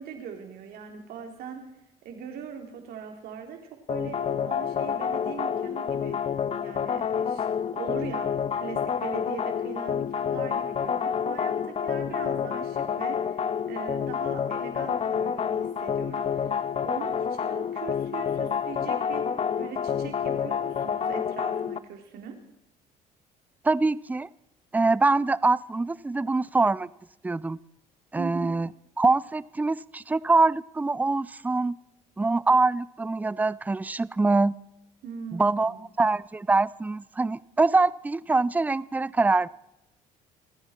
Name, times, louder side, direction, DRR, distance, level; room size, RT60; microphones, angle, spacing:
voice 1, 0.0-1.6 2.0-3.6 3.9-6.2 6.6-7.4 7.7-19.2 19.6-22.4 28.2-28.5 35.0-35.8, right 7 dB, 70° right, 4 dB, 3.3 m, -40 dB
sound 1, 3.9-21.8, left 7 dB, 40° left, 0.7 m, -28 dB
voice 2, 23.6-24.3 24.7-26.9 27.2-27.6 28.1-28.7 29.0-31.7 32.2-34.6 35.3-39.5, right 3 dB, 10° right, 20 dB, 0.4 m, -24 dB
28.0 x 9.9 x 4.4 m, 0.88 s
supercardioid pair, 80°, 16 cm